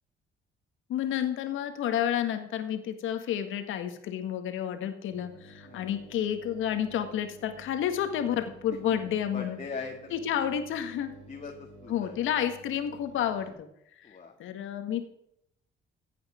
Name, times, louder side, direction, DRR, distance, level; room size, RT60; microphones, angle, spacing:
voice 1, 0.9-9.6 10.1-11.1 11.9-13.7 14.0-15.1, left 10 dB, 85° left, 8 dB, 1.8 m, -30 dB
sound 1, 5.1-13.5, right 2 dB, 90° right, 4.3 m, -52 dB
voice 2, 5.6-5.9 9.3-10.2 10.4-10.6 11.3-12.2 14.0-14.4, left 4 dB, 35° left, 1 dB, 2.0 m, -41 dB
15.5 x 8.7 x 5.1 m, 0.74 s
cardioid pair, 90°, 20 cm